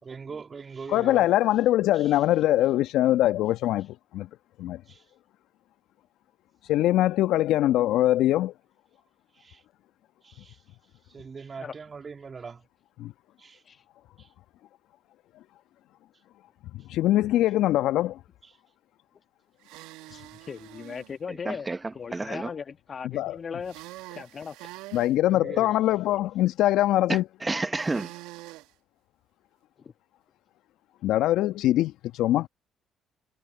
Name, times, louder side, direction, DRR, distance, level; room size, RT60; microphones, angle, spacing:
voice 1, 0.0-1.3 1.9-2.2 4.8-5.1 9.3-9.6 10.2-10.8 11.0-12.7 13.4-13.6 14.2-14.3 18.4-18.6 25.3-25.8, right 5 dB, 40° right, 3.2 m, -42 dB
voice 2, 0.9-4.3 4.6-4.8 6.7-8.5 13.0-13.1 16.9-18.2 23.0-23.4 24.9-27.2 31.0-32.5, left 14 dB, 70° left, 1.3 m, -23 dB
sound 1, 19.6-21.1 23.6-25.1 27.8-28.7, right 19 dB, 75° right, 1.5 m, -45 dB
voice 3, 20.1-21.7 21.9-23.8 24.1-24.7 29.8-29.9, left 6 dB, 45° left, 1.4 m, -38 dB
voice 4, 21.3-22.5 27.1-28.1, right 3 dB, 25° right, 1.3 m, -31 dB
hypercardioid pair, 50°, 0 cm